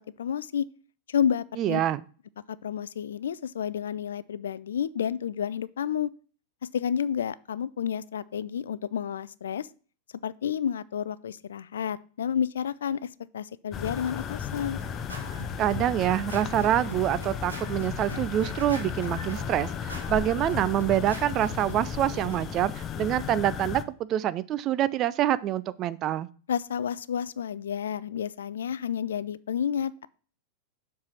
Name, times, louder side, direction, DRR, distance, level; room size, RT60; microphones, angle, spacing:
voice 1, 0.2-0.7 1.1-1.8 2.6-6.1 6.7-9.7 10.2-13.1 13.3-14.8 26.5-30.1, left 8 dB, 65° left, 19 dB, 0.3 m, -30 dB
voice 2, 1.6-2.0 15.6-26.3, right 12 dB, 35° right, 16 dB, 0.4 m, -26 dB
sound 1, 13.7-23.8, left 8 dB, 30° left, 0.6 m, -35 dB
Scratching (performance technique), 13.9-22.4, right 1 dB, 85° right, 2.1 m, -42 dB
7.3 x 4.7 x 5.6 m, 0.40 s
figure-of-eight pair, 90°, 0 cm